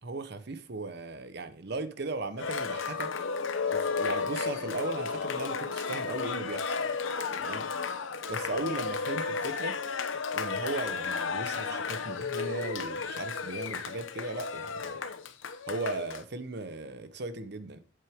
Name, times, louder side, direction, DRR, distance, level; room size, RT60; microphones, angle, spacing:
voice 1, 0.0-3.1 3.7-6.7 7.4-7.7 8.3-9.8 10.3-15.0 15.7-17.8, right 2 dB, 55° right, 0.9 m, -37 dB
Cheering, 2.4-16.2, left 5 dB, 85° left, 0.8 m, -33 dB
8.2 x 7.7 x 3.6 m
head